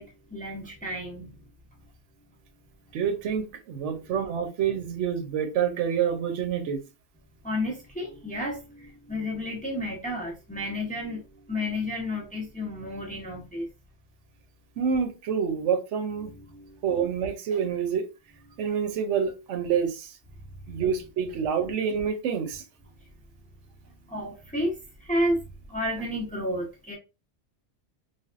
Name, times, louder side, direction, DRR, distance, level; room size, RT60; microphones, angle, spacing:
voice 1, 0.0-1.5 1.7-1.8 2.9-3.0 3.9-4.0 7.4-13.7 16.2-16.8 18.5-18.6 20.4-21.1 23.0-23.1 24.1-26.9, left 1 dB, 10° left, 0.5 m, -32 dB
voice 2, 2.9-6.8 14.8-16.3 16.8-18.1 18.6-20.2 20.7-22.6, right 7 dB, 85° right, 0.9 m, -27 dB
3.3 x 2.3 x 2.4 m
omnidirectional pair, 1.2 m